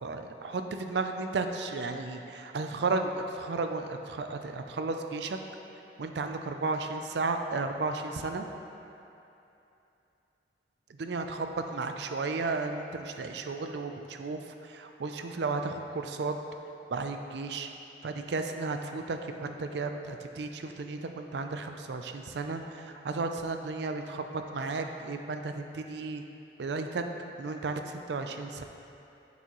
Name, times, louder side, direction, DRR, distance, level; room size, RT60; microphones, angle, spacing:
voice 1, 0.0-5.4 6.0-8.5 11.0-16.3 16.9-17.7 18.0-26.2 26.6-27.0 27.4-28.6, right 3 dB, 70° right, 6 dB, 0.5 m, -34 dB
8.1 x 7.0 x 3.0 m, 2.8 s
head